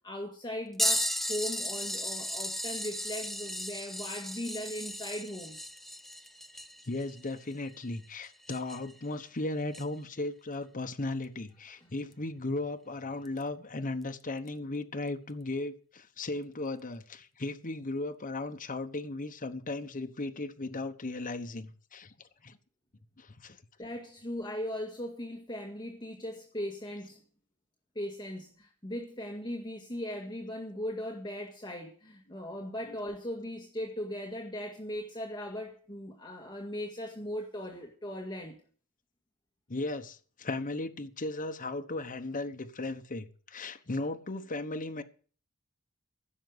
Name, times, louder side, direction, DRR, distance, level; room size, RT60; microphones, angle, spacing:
voice 1, 0.0-5.6 11.8-11.9 23.8-27.2 28.0-38.6, equal, 20° left, 1.9 m, -38 dB
sound 1, 0.8-9.0 9.7-9.8 12.1-12.2 13.3-13.4 14.5-14.6, equal, ahead, 0.5 m, -35 dB
voice 2, 6.9-22.1 22.4-22.6 23.2-23.6 32.9-33.0 39.7-45.0, left 2 dB, 35° left, 1.1 m, -36 dB
15.5 x 6.6 x 7.9 m
head